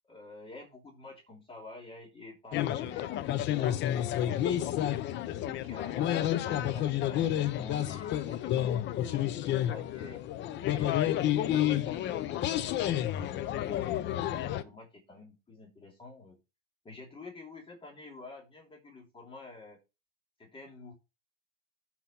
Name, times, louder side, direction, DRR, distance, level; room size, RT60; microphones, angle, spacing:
voice 1, 0.1-4.8 5.4-10.2 10.7-16.4 16.8-19.8 20.4-20.9, left 3 dB, 15° left, 0 dB, 3.2 m, -49 dB
sound 1, 2.5-14.6, left 12 dB, 30° left, 0.8 m, -30 dB
8.5 x 5.8 x 5.4 m, 0.27 s
supercardioid pair, 135°, 37 cm